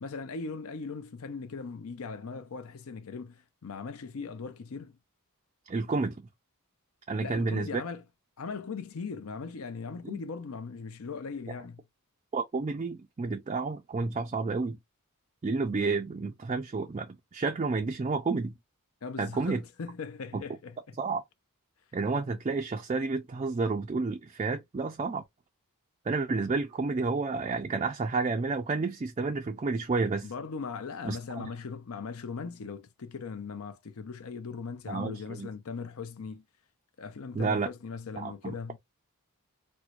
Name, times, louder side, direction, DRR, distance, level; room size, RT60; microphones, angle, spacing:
voice 1, 0.0-5.0 7.2-8.0 8.4-11.8 19.0-20.8 30.2-36.4 37.0-38.8, left 5 dB, 70° left, 0.6 m, -39 dB
voice 2, 5.7-6.2 7.1-7.8 10.0-10.2 12.3-14.8 15.4-18.5 19.2-19.6 20.3-20.4 21.0-21.2 21.9-25.2 26.1-30.3 31.0-31.4 34.9-35.5 37.3-37.7 38.2-38.5, right 4 dB, 30° right, 0.4 m, -30 dB
4.4 x 2.1 x 2.4 m
head